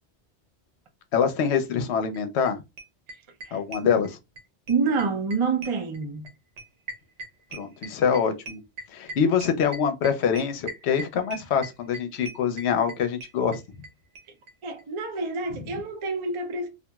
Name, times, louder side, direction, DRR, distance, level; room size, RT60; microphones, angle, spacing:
voice 1, 1.1-2.6 3.5-4.2 7.5-8.6 8.9-13.6, left 7 dB, 70° left, 0.8 m, -25 dB
sound 1, 2.1-2.2 2.5-2.6 2.8-4.4 4.7-13.9 14.1-14.2 14.5-14.6 14.8-14.9, right 2 dB, 80° right, 1.0 m, -39 dB
voice 2, 4.7-6.3 14.6-16.7, right 4 dB, 40° right, 0.4 m, -27 dB
2.9 x 2.4 x 2.2 m
omnidirectional pair, 1.2 m